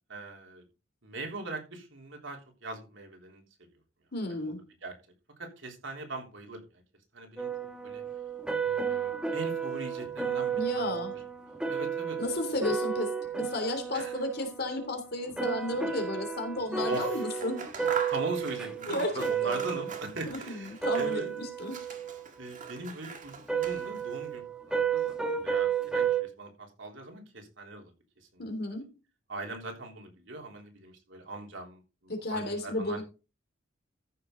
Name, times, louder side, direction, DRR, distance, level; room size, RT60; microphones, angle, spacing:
voice 1, 0.1-0.6 1.0-3.4 4.4-4.5 4.8-4.9 5.4-6.6 7.1-7.5 7.8-8.0 8.6-10.9 11.7-12.2 13.9-14.2 16.9-17.2 18.1-21.3 22.4-27.9 28.3-28.4 29.3-33.0, right 2 dB, 65° right, 2 dB, 3.5 m, -40 dB
voice 2, 4.1-4.6 10.5-11.2 12.2-17.6 18.9-19.7 20.3-21.8 28.4-28.8 32.1-33.0, left 1 dB, 50° left, 5 dB, 3.2 m, -33 dB
sound 1, 7.4-20.3 20.7-22.7 23.5-26.2, right 7 dB, 5° right, 1.2 m, -32 dB
Scissors, 16.8-21.3 21.6-24.2, right 5 dB, 40° right, 1.8 m, -42 dB
14.5 x 6.9 x 3.9 m, 0.31 s
head